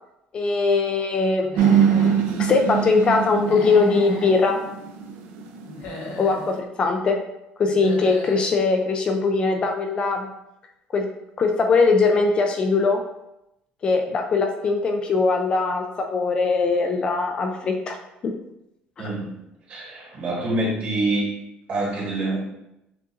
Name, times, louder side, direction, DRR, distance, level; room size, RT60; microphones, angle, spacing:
voice 1, 0.3-4.6 6.2-7.2 7.6-10.3 10.9-11.1 11.4-13.0 13.8-18.0 18.2-18.3 19.0-19.1, left 4 dB, 30° left, 4 dB, 0.3 m, -21 dB
Human voice / Animal, 1.4-2.2 3.4-4.4 5.6-6.5 7.6-8.5, left 2 dB, 85° left, 1.0 m, -36 dB
sound 1, 1.6-6.6, right 8 dB, 85° right, 0.5 m, -23 dB
voice 2, 19.0-19.3 19.7-21.3 21.7-22.4, right 2 dB, 40° right, -5 dB, 1.5 m, -26 dB
6.5 x 2.5 x 2.4 m, 0.86 s
cardioid pair, 170°, 3 cm